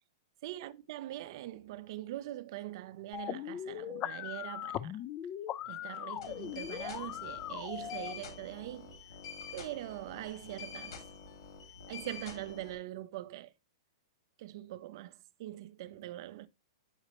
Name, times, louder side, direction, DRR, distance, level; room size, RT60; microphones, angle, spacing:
voice 1, 0.4-5.0 5.7-9.0 9.5-11.1 11.9-13.5 14.4-16.5, right 15 dB, 55° right, 0.4 m, -43 dB
sound 1, 3.1-8.1, left 12 dB, 30° left, 0.3 m, -40 dB
sound 2, 6.2-12.8, left 6 dB, 75° left, 3.3 m, -47 dB
9.7 x 4.1 x 2.9 m
hypercardioid pair, 140°, 3 cm